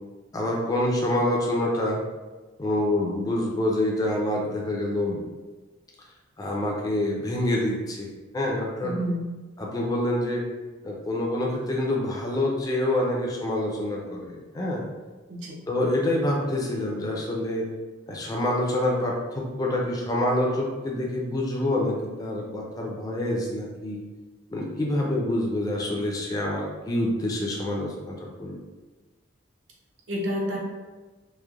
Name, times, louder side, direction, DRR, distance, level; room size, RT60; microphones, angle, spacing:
voice 1, 0.3-2.0 2.6-5.2 6.4-8.9 9.6-10.5 10.8-14.8 15.7-17.7 18.1-24.0 24.5-28.6, left 1 dB, 20° left, -2 dB, 0.3 m, -26 dB
voice 2, 8.8-9.3 15.3-15.6 30.1-30.6, equal, 75° right, -2 dB, 0.6 m, -29 dB
3.0 x 2.0 x 2.3 m, 1.3 s
head